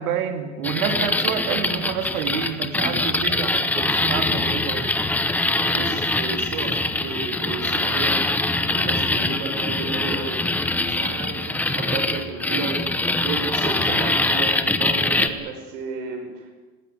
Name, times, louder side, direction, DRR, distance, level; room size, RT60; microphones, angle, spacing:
voice 1, 0.0-4.9, right 8 dB, 85° right, 7 dB, 2.8 m, -28 dB
sound 1, 0.6-15.3, left 2 dB, 5° left, 0.8 m, -23 dB
voice 2, 5.4-10.5 10.9-12.9 13.2-16.5, right 4 dB, 60° right, 5 dB, 5.8 m, -33 dB
19.0 x 18.0 x 9.6 m, 1.2 s
supercardioid pair, 160°, 42 cm